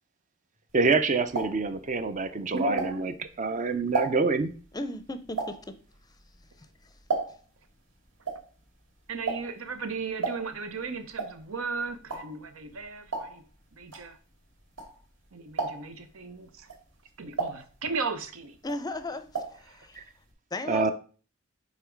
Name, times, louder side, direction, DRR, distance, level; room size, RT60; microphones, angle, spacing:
voice 1, 0.7-3.1 3.4-4.5 20.0-20.1 20.7-20.9, right 4 dB, 35° right, 11 dB, 0.5 m, -26 dB
sound 1, 0.8-3.3 3.7-7.6 7.9-15.2 15.5-16.1 16.6-18.3 18.6-19.7 19.9-20.0 20.3-20.4, right 4 dB, 65° right, 2.2 m, -35 dB
voice 2, 2.5-3.0 9.1-13.4 13.7-14.2 15.3-16.7 17.2-18.6 19.7-19.9, right 4 dB, 85° right, 10 dB, 0.8 m, -35 dB
voice 3, 4.7-5.8 18.6-20.0 20.5-20.9, left 2 dB, 20° left, 11 dB, 0.5 m, -36 dB
5.7 x 4.0 x 4.5 m, 0.39 s
head